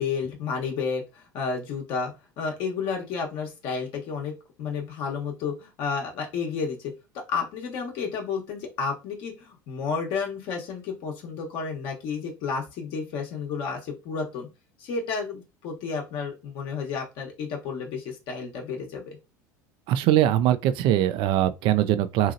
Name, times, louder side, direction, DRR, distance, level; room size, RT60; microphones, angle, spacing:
voice 1, 0.0-14.5 14.8-19.2, left 5 dB, 55° left, 1.0 m, -31 dB
voice 2, 19.9-22.3, right 12 dB, 55° right, 0.4 m, -22 dB
2.8 x 2.8 x 2.5 m
hypercardioid pair, 80°, 10 cm